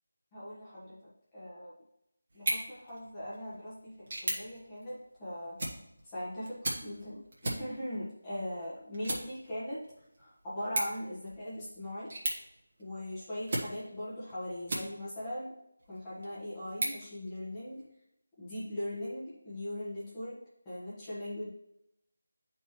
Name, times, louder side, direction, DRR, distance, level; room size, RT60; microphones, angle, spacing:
voice 1, 0.3-1.7 2.3-5.6 6.0-9.8 10.2-12.1 12.8-15.5 15.9-17.8 18.4-20.4 20.6-21.5, left 1 dB, 15° left, -10 dB, 1.4 m, -40 dB
sound 1, 2.3-15.3 15.8-17.9, right 1 dB, 45° right, 1.6 m, -40 dB
8.8 x 4.6 x 3.1 m, 0.82 s
figure-of-eight pair, 175°, 0 cm